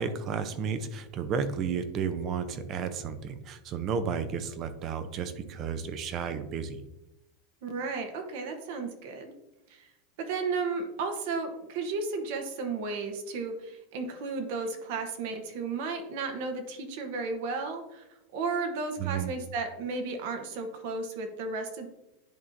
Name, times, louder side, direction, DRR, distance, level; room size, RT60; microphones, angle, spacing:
voice 1, 0.0-6.8 19.0-19.3, right 6 dB, 35° right, 11 dB, 0.6 m, -32 dB
voice 2, 7.6-9.4 9.7-9.9 10.2-18.0 18.3-21.9, right 4 dB, 60° right, 5 dB, 0.9 m, -34 dB
10.5 x 3.7 x 2.6 m, 0.96 s
supercardioid pair, 145°, 0 cm